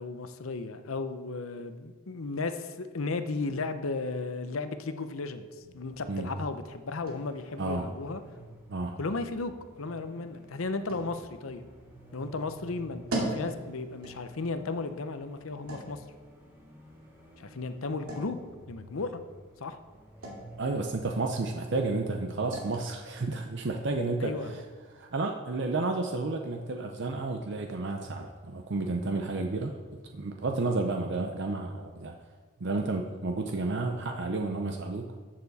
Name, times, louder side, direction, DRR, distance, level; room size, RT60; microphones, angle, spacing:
voice 1, 0.0-5.5 5.7-8.2 9.0-11.6 12.1-16.0 17.4-18.4 18.7-19.2 19.6-19.8 24.2-24.5, left 3 dB, 75° left, 9 dB, 0.7 m, -35 dB
sound 1, 5.6-25.2, right 1 dB, 85° right, 2.5 m, -44 dB
sound 2, 7.0-20.8, right 1 dB, 10° right, 1.7 m, -52 dB
voice 2, 20.6-24.6 24.9-29.8 30.1-32.2 32.6-35.2, right 3 dB, 55° right, 4 dB, 0.6 m, -31 dB
13.5 x 6.9 x 4.1 m, 1.5 s
head